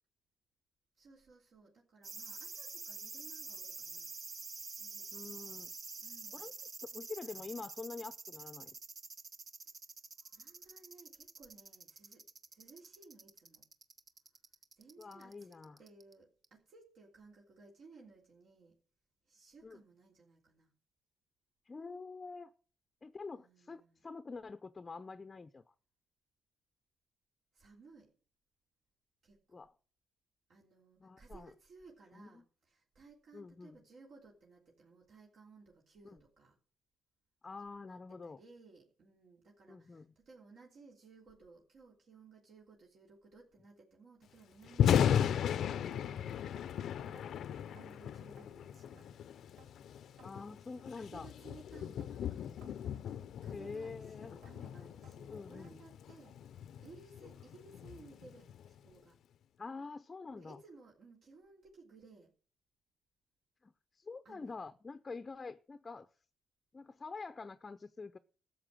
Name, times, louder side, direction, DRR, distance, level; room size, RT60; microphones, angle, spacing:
voice 1, 1.0-4.1 4.8-5.2 6.0-6.5 10.3-13.7 14.8-18.8 19.2-20.7 23.3-24.0 27.5-28.1 29.2-29.6 30.5-36.6 37.8-46.6 47.0-49.2 50.9-52.4 53.3-56.4 56.8-58.5 58.8-59.2 60.3-62.3 64.2-64.6, right 3 dB, 65° right, 3.4 m, -59 dB
sound 1, 2.0-16.1 16.4-16.5, right 4 dB, 45° right, 1.1 m, -47 dB
voice 2, 5.1-5.7 6.3-6.5 6.9-8.7 15.0-15.8 19.6-19.8 21.7-22.5 23.0-25.6 29.5-29.7 31.0-31.5 32.1-32.4 33.3-33.8 36.0-36.2 37.4-38.4 39.7-40.1 50.2-51.3 53.5-54.4 55.3-55.8 59.6-60.6 63.6-66.1 66.7-68.2, left 4 dB, 30° left, 0.6 m, -46 dB
Thunder, 44.6-58.8, left 9 dB, 70° left, 0.7 m, -36 dB
sound 2, 45.9-46.1 46.6-46.7 47.2-47.3 47.8-47.9 48.4-48.5 49.0-49.1 49.6-49.7 50.2-50.3 50.8-50.9 51.4-51.5 52.0-52.1 52.6-52.8 53.2-53.4 53.8-53.9 54.4-54.6 55.0-55.2 55.6-55.8 56.2-56.3 56.9-57.0 57.5-57.6 58.1-58.2, right 5 dB, 80° right, 2.1 m, -62 dB
13.0 x 7.1 x 7.6 m
cardioid pair, 90°, 0 cm